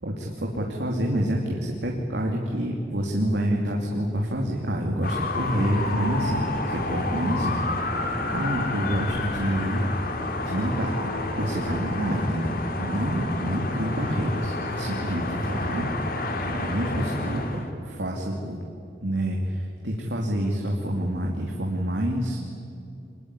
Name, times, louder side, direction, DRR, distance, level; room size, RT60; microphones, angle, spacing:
voice 1, 0.0-7.6 7.9-9.8 10.4-11.0 11.4-15.9 16.4-18.6 19.0-22.4, equal, 80° right, 0 dB, 2.8 m, -27 dB
sound 1, 5.0-17.7, left 2 dB, 55° left, 2.7 m, -29 dB
25.5 x 21.0 x 10.0 m, 2.7 s
head